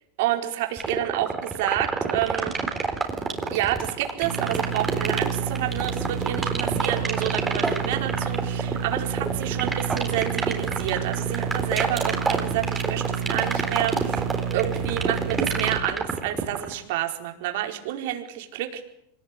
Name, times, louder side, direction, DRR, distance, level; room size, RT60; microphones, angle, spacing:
voice 1, 0.2-2.6 3.4-14.2 14.5-18.8, right 13 dB, 65° right, 4 dB, 4.7 m, -29 dB
sound 1, 0.8-16.7, right 4 dB, 10° right, 3.9 m, -27 dB
my keyboard idle, 4.2-15.8, right 7 dB, 40° right, 4.8 m, -30 dB
26.0 x 19.0 x 10.0 m, 0.77 s
supercardioid pair, 140°, 0 cm